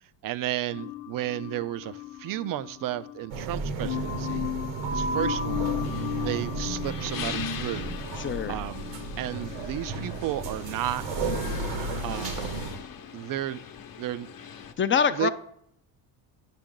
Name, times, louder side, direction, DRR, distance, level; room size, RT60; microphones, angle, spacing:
voice 1, 0.2-4.5 4.9-5.8 6.2-7.9 8.5-8.8 9.2-11.3 12.0-12.6 13.1-13.6 14.0-14.3 15.1-15.3, right 13 dB, 50° right, 0.4 m, -33 dB
sound 1, 0.7-12.9, left 14 dB, 90° left, 0.7 m, -38 dB
sound 2, 3.3-12.8, right 3 dB, 85° right, 1.1 m, -33 dB
sound 3, 5.7-14.7, left 7 dB, 50° left, 0.9 m, -42 dB
voice 2, 8.2-8.6 14.8-15.3, left 6 dB, 30° left, 0.4 m, -24 dB
9.1 x 6.1 x 3.7 m
supercardioid pair, 90°, 46 cm